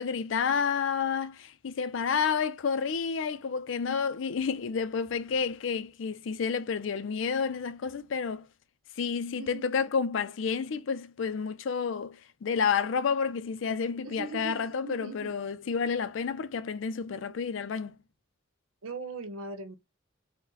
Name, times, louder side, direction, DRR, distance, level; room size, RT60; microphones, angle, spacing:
voice 1, 0.0-8.5 9.0-18.0, left 6 dB, 65° left, 0.4 m, -30 dB
voice 2, 9.4-9.8 14.0-15.3 18.8-19.8, right 3 dB, 90° right, 0.8 m, -40 dB
3.9 x 2.1 x 3.9 m
head